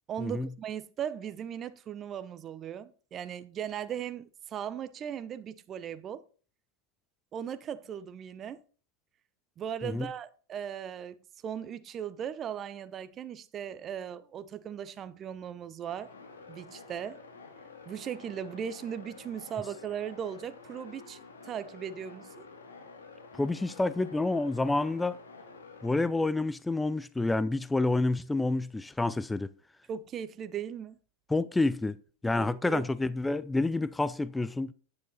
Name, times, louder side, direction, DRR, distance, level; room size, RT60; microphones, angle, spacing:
voice 1, 0.1-6.2 7.3-8.6 9.6-11.2 11.4-16.1 16.5-17.2 17.9-22.5 29.9-31.0 32.4-32.8, right 9 dB, 30° right, 0.8 m, -38 dB
sound 1, 15.9-26.0, left 4 dB, 90° left, 2.4 m, -50 dB
voice 2, 23.4-25.2 25.8-29.5 31.3-32.0 32.2-34.7, left 2 dB, 10° left, 0.5 m, -28 dB
9.7 x 7.4 x 4.2 m
hypercardioid pair, 110°, 0 cm